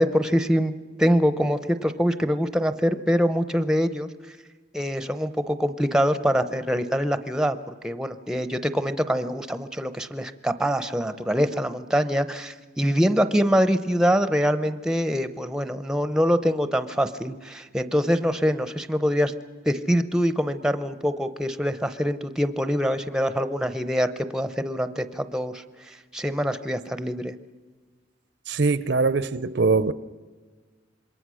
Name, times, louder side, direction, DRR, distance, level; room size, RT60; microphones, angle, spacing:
voice 1, 0.0-4.1 4.7-19.3 19.7-27.3, equal, 5° right, 0.7 m, -24 dB
voice 2, 28.5-29.9, right 4 dB, 60° right, 0.7 m, -22 dB
27.0 x 22.0 x 6.3 m
head